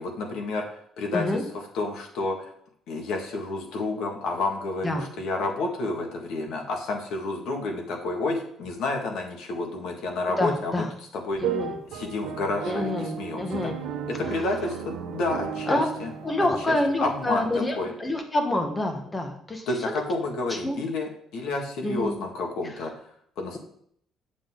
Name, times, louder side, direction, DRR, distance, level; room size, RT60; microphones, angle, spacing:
voice 1, 0.0-1.2 1.7-2.5 2.9-10.8 11.1-11.4 11.9-13.7 14.1-16.1 16.4-16.5 17.0-17.9 19.7-22.9 23.4-23.6, left 2 dB, 70° left, 1 dB, 1.9 m, -30 dB
voice 2, 1.1-1.4 4.8-5.1 10.4-10.9 11.4-11.8 12.7-13.8 15.6-15.8 16.2-19.7 20.5-20.8 21.8-22.2, left 1 dB, 15° left, 4 dB, 1.2 m, -27 dB
sound 1, 11.3-17.2, right 8 dB, 80° right, 1.0 m, -34 dB
7.7 x 7.3 x 3.8 m, 0.65 s
cardioid pair, 165°, 0 cm